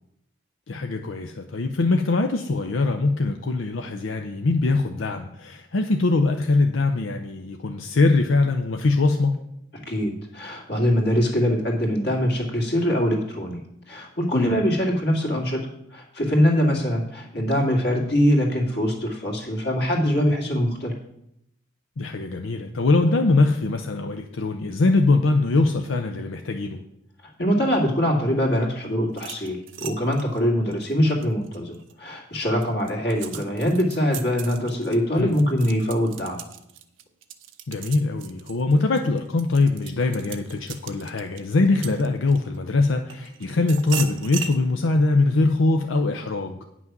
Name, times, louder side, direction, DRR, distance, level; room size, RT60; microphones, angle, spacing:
voice 1, 0.7-9.4 14.3-14.6 22.0-26.8 35.2-35.3 37.7-46.6, left 3 dB, 85° left, 5 dB, 0.6 m, -22 dB
voice 2, 9.9-15.6 15.9-20.9 27.2-36.4, equal, 55° left, 1 dB, 2.1 m, -23 dB
sound 1, 29.1-31.9 32.4-42.6 43.1-44.6, right 8 dB, 75° right, 0.7 m, -38 dB
9.3 x 6.0 x 6.0 m, 0.80 s
head